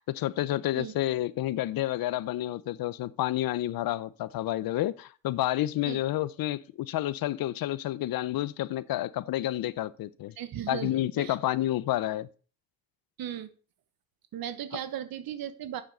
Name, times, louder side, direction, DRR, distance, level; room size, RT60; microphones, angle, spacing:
voice 1, 0.0-10.3 10.7-12.3, left 14 dB, 70° left, 0.7 m, -30 dB
voice 2, 10.4-11.4 13.2-13.5 14.3-15.8, right 10 dB, 70° right, 1.2 m, -36 dB
8.6 x 6.5 x 5.3 m
cardioid pair, 75°, 37 cm